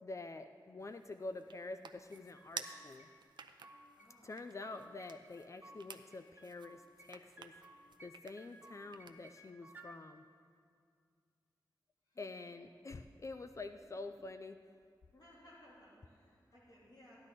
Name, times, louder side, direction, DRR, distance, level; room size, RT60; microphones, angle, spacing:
voice 1, 0.0-3.1 4.2-7.5 8.0-10.3 12.2-14.6, left 3 dB, 40° left, 8 dB, 0.4 m, -47 dB
sound 1, 0.8-9.5, right 5 dB, 75° right, 0.5 m, -54 dB
sound 2, 2.1-3.1 3.4-4.1 4.4-5.8 6.1-7.1 7.4-8.1 8.4-9.9, right 1 dB, 25° right, 0.9 m, -58 dB
voice 2, 4.0-4.4 12.1-12.3 13.8-14.1 15.1-17.2, left 1 dB, 60° left, -7 dB, 3.4 m, -61 dB
14.0 x 10.5 x 4.1 m, 2.1 s
wide cardioid pair, 95°, 8 cm